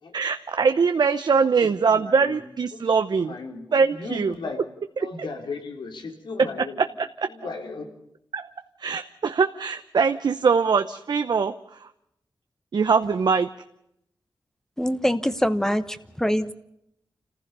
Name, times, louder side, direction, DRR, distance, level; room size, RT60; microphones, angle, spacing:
voice 1, 0.1-3.3 3.7-4.3 7.0-7.1 8.3-8.5 8.8-11.9 12.7-13.5, right 5 dB, 65° right, 9 dB, 0.8 m, -22 dB
voice 2, 1.4-2.4 2.7-2.9 3.2-4.6 5.0-6.8 7.3-7.9, left 4 dB, 90° left, 3 dB, 3.6 m, -36 dB
voice 3, 14.8-16.5, equal, 5° left, 11 dB, 1.0 m, -24 dB
28.0 x 15.5 x 6.8 m, 0.79 s
wide cardioid pair, 85°, 8 cm